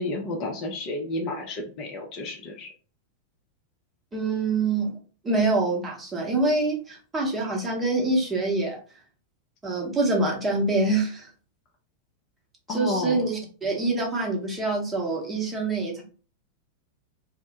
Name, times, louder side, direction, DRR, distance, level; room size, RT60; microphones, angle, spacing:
voice 1, 0.0-2.7 12.7-13.2, left 2 dB, 40° left, 2 dB, 0.5 m, -31 dB
voice 2, 4.1-4.9 5.2-8.8 9.6-11.3 12.7-16.0, right 2 dB, 15° right, -1 dB, 0.8 m, -25 dB
2.1 x 2.0 x 2.9 m, 0.38 s
figure-of-eight pair, 90°, 0 cm